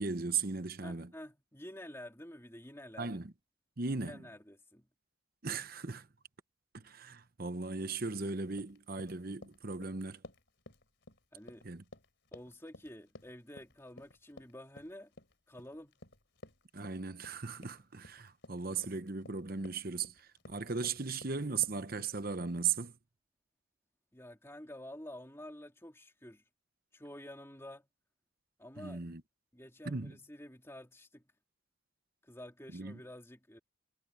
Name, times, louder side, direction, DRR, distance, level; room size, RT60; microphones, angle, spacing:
voice 1, 0.0-1.1 3.0-3.3 3.8-4.2 5.4-6.1 6.7-10.2 11.6-11.8 16.7-22.9 28.8-29.2 29.8-30.1 32.7-33.0, right 5 dB, 45° right, 1.0 m, -37 dB
voice 2, 0.8-3.2 4.0-4.8 11.3-11.6 12.3-15.1 15.5-16.0 24.1-26.4 26.9-27.9 28.6-29.0 29.5-31.2 32.2-33.6, left 1 dB, 10° left, 2.9 m, -49 dB
Run, 8.5-22.6, left 2 dB, 55° left, 4.3 m, -55 dB
head